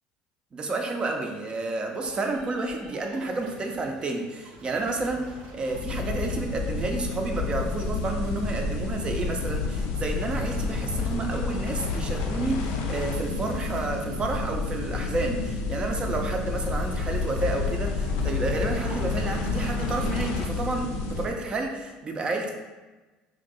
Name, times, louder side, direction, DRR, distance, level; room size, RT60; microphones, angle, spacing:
voice 1, 0.5-22.5, right 2 dB, 30° right, 3 dB, 0.5 m, -30 dB
sound 1, 2.0-11.4 18.8-21.6, right 1 dB, 70° right, 0.9 m, -50 dB
sound 2, 5.7-21.3, left 3 dB, 80° left, 0.5 m, -29 dB
2.9 x 2.6 x 4.0 m, 1.2 s
supercardioid pair, 105°, 3 cm